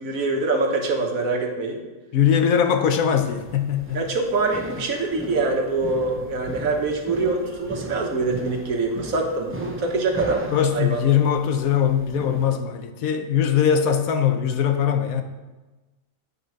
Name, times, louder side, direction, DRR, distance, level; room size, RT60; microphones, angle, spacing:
voice 1, 0.0-1.8 3.9-10.4 10.7-11.0, right 3 dB, 85° right, 2 dB, 1.6 m, -24 dB
voice 2, 2.1-4.0 10.5-15.2, left 8 dB, 85° left, 8 dB, 1.2 m, -21 dB
sound 1, 3.2-12.5, right 2 dB, 20° right, 0.3 m, -38 dB
8.9 x 5.4 x 4.7 m, 1.2 s
omnidirectional pair, 1.4 m